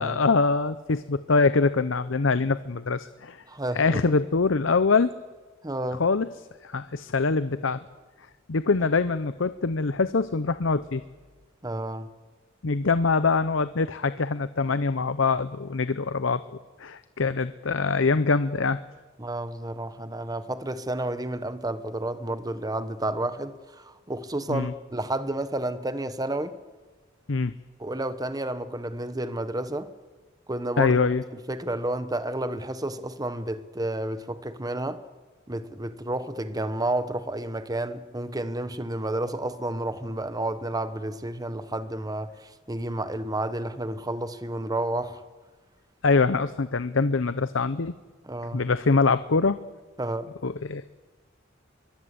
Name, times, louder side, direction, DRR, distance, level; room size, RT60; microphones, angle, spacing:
voice 1, 0.0-3.4 3.7-5.1 5.9-6.3 6.6-7.8 8.5-11.0 12.6-16.4 16.8-18.8 24.5-24.7 27.3-27.5 30.8-31.2 46.0-47.9 48.5-49.6 50.4-50.9, left 4 dB, 70° left, 0.8 m, -24 dB
voice 2, 3.5-4.0 5.6-6.0 11.6-12.1 19.2-26.6 27.8-29.9 30.5-31.0 31.5-35.0 35.5-45.2 48.2-48.6 50.0-50.3, right 1 dB, 20° right, 1.1 m, -31 dB
24.0 x 22.5 x 8.0 m
head